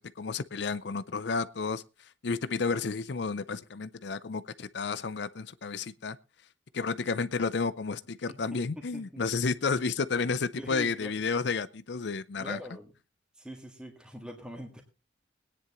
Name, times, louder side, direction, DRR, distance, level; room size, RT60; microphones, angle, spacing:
voice 1, 0.2-1.8 2.2-6.2 6.7-12.6, left 4 dB, 65° left, 0.5 m, -31 dB
voice 2, 8.3-8.6 8.9-9.2 10.6-11.1 12.4-12.9 13.4-14.8, equal, 5° right, 1.8 m, -42 dB
21.5 x 9.9 x 3.0 m
head